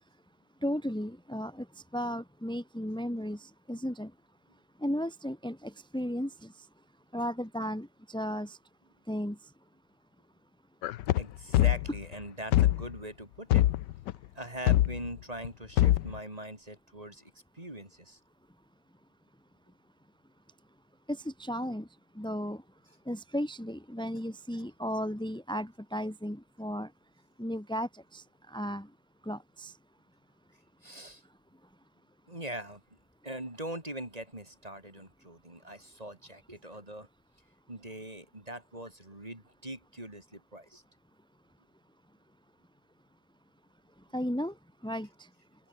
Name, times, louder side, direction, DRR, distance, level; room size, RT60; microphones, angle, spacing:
voice 1, 0.6-1.7 1.9-4.1 4.8-6.5 7.1-8.6 9.1-9.4 21.1-21.9 22.1-22.6 23.1-26.9 27.4-28.9 29.2-29.7 44.1-44.5 44.8-45.3, equal, 5° left, 2.7 m, -35 dB
sound 1, 10.8-12.1 12.5-12.9 13.5-14.1 14.7-15.1 15.4-15.5 15.8-16.2, left 14 dB, 80° left, 1.3 m, -24 dB
voice 2, 11.1-13.7 14.3-18.2 30.8-31.2 32.3-32.8 33.2-37.1 37.7-40.8, right 1 dB, 20° right, 4.1 m, -42 dB
open air
omnidirectional pair, 1.9 m